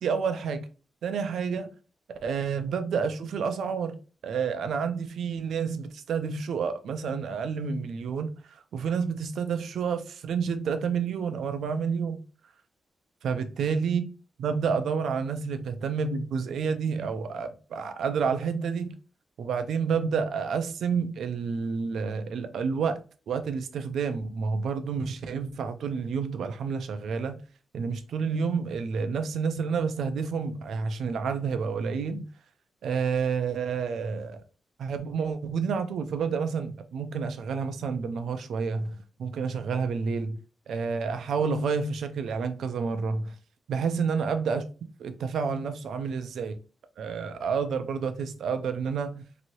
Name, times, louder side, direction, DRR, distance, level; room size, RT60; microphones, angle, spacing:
voice 1, 0.0-0.6 1.0-1.7 2.2-4.0 4.2-12.2 13.2-14.1 14.4-18.9 19.4-27.4 27.7-32.2 32.8-34.4 34.8-40.4 40.7-43.3 43.7-44.7 45.0-46.6 47.0-49.2, right 5 dB, 80° right, 0.4 m, -29 dB
3.0 x 2.7 x 2.9 m
wide cardioid pair, 150°, 0 cm